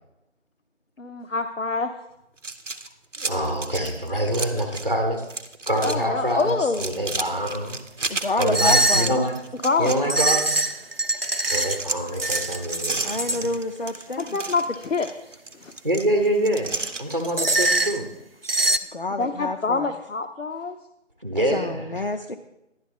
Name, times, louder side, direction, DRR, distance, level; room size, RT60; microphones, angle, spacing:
voice 1, 1.0-1.9 5.8-7.0 9.6-10.4 14.2-15.7 19.2-20.8, left 4 dB, 90° left, 6 dB, 0.8 m, -26 dB
sound 1, 2.4-4.9 5.2-6.0 6.3-10.7 11.1-17.7, right 3 dB, 90° right, 0.9 m, -33 dB
voice 2, 3.2-5.2 5.7-8.1 8.4-9.4 9.8-10.6 11.5-13.0 13.3-13.4 15.8-16.7 17.0-18.0 21.2-22.0, equal, 35° right, 4 dB, 0.9 m, -25 dB
voice 3, 8.1-9.2 13.0-14.4 18.9-19.9 21.3-22.4, left 2 dB, 50° left, 5 dB, 0.5 m, -29 dB
sound 2, 8.5-9.2 10.1-11.8 12.2-13.4 17.4-18.0 18.4-18.8, right 2 dB, 55° right, 0.4 m, -22 dB
11.0 x 10.5 x 3.6 m, 0.90 s
figure-of-eight pair, 175°, 36 cm